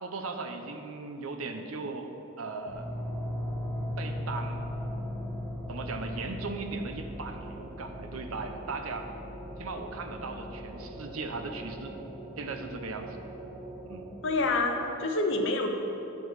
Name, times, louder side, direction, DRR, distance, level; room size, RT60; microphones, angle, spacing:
voice 1, 0.0-2.1 2.4-2.9 4.0-4.7 5.7-9.1 9.6-12.0 12.4-13.2 13.9-14.1, right 3 dB, 80° right, 6 dB, 0.7 m, -38 dB
sound 1, 2.7-14.6, equal, ahead, 1.1 m, -38 dB
voice 2, 14.2-15.7, left 2 dB, 65° left, 3 dB, 0.9 m, -27 dB
9.3 x 5.3 x 6.3 m, 2.9 s
head